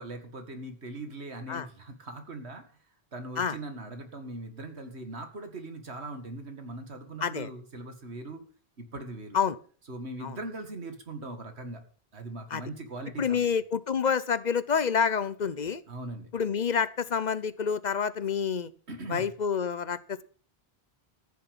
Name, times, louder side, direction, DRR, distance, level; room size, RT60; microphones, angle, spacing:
voice 1, 0.0-2.6 3.1-8.4 8.8-9.4 9.9-11.8 12.1-13.5 15.9-16.3 18.9-19.3, right 2 dB, 85° right, 7 dB, 2.2 m, -40 dB
voice 2, 7.2-7.5 9.3-9.6 10.2-10.4 12.5-12.6 13.2-15.8 16.3-18.7 19.1-20.2, left 6 dB, 45° left, 16 dB, 0.8 m, -28 dB
14.0 x 7.0 x 7.1 m, 0.42 s
omnidirectional pair, 1.1 m